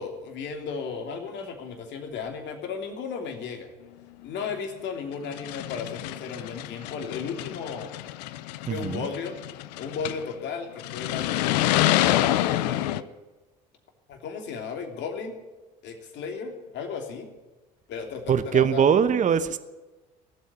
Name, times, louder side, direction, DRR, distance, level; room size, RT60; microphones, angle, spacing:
voice 1, 0.0-3.7 4.2-7.9 8.7-9.3 9.8-11.6 12.0-13.0 14.1-15.4 15.8-17.3 17.9-18.9, left 5 dB, 60° left, 4 dB, 3.1 m, -35 dB
sound 1, 4.5-4.6 5.2-10.3 10.8-13.0, left 15 dB, 75° left, 0.6 m, -27 dB
voice 2, 8.7-9.1 18.3-19.6, right 8 dB, 35° right, 13 dB, 1.0 m, -22 dB
17.5 x 8.2 x 9.5 m, 1.2 s
hypercardioid pair, 65°, 21 cm